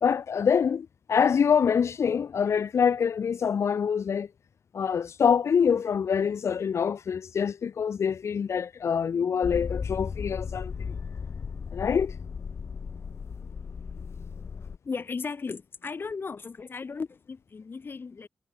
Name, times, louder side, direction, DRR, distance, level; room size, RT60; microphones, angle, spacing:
voice 1, 0.0-4.3 4.7-10.7 11.7-12.1, left 7 dB, 90° left, 0.9 m, -25 dB
Motor vehicle (road), 9.4-14.8, left 5 dB, 65° left, 2.1 m, -36 dB
voice 2, 14.8-18.3, left 4 dB, 50° left, 2.9 m, -36 dB
wide cardioid pair, 125°, 5 cm